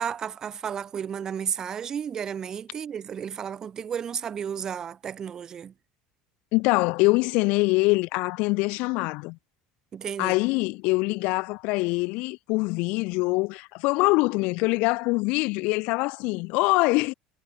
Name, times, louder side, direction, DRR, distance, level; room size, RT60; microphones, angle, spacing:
voice 1, 0.0-5.7 9.9-10.4, right 8 dB, 25° right, 5.3 m, -33 dB
voice 2, 6.5-9.4 10.2-17.1, left 26 dB, 60° left, 1.9 m, -24 dB
cardioid pair, 160°, 2 cm